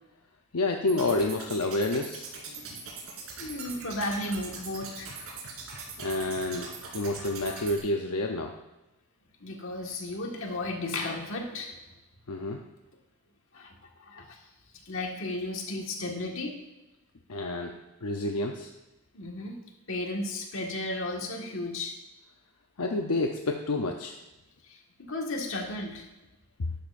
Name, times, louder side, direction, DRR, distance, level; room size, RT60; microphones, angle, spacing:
voice 1, 0.5-2.3 6.0-8.6 12.3-12.6 17.3-18.7 22.8-24.2, left 2 dB, 80° left, 3 dB, 0.7 m, -29 dB
sound 1, 0.9-7.8, right 4 dB, 75° right, 3.1 m, -41 dB
voice 2, 3.4-5.1 9.4-11.8 13.5-13.7 14.0-14.4 14.8-16.6 19.1-19.6 19.9-22.0 24.6-26.0, left 2 dB, 60° left, 1 dB, 1.7 m, -34 dB
13.0 x 11.0 x 2.6 m, 1.0 s
head